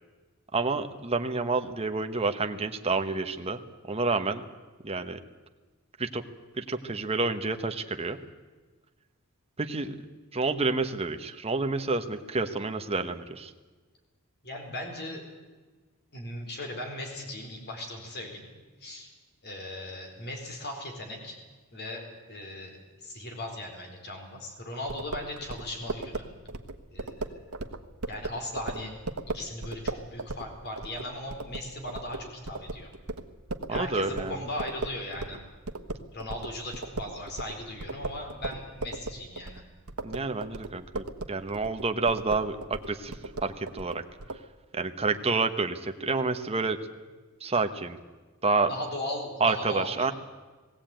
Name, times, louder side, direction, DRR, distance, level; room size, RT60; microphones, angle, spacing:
voice 1, 0.5-3.6 3.8-4.4 4.8-5.2 6.0-6.2 6.6-8.2 9.6-10.0 10.3-13.5 33.7-34.3 40.0-43.1 43.4-44.0 44.7-46.8 47.4-48.0 48.4-48.7 49.4-50.1, right 3 dB, 30° right, 6 dB, 1.2 m, -29 dB
voice 2, 14.4-15.2 16.1-18.5 18.8-19.1 19.4-21.4 21.7-22.8 23.0-26.3 26.9-27.5 28.1-28.9 29.3-32.9 33.7-35.4 36.1-39.6 48.7-50.1, left 1 dB, 50° left, 3 dB, 4.4 m, -38 dB
sound 1, 24.9-35.4 35.7-44.4, right 2 dB, 90° right, 1.2 m, -37 dB
20.0 x 16.0 x 9.1 m, 1.3 s
head